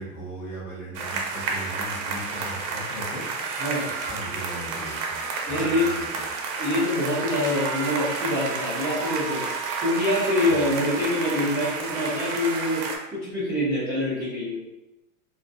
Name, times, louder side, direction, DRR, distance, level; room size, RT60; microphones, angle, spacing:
voice 1, 0.0-3.6 4.0-6.1 10.5-10.6, right 1 dB, 35° left, -5 dB, 0.8 m, -38 dB
sound 1, 0.9-13.0, right 4 dB, 75° right, 0.6 m, -30 dB
voice 2, 5.5-5.9 6.6-9.4 9.8-12.8 13.1-14.6, left 1 dB, 5° right, -17 dB, 0.3 m, -25 dB
2.4 x 2.3 x 2.5 m, 0.97 s
supercardioid pair, 165°, 42 cm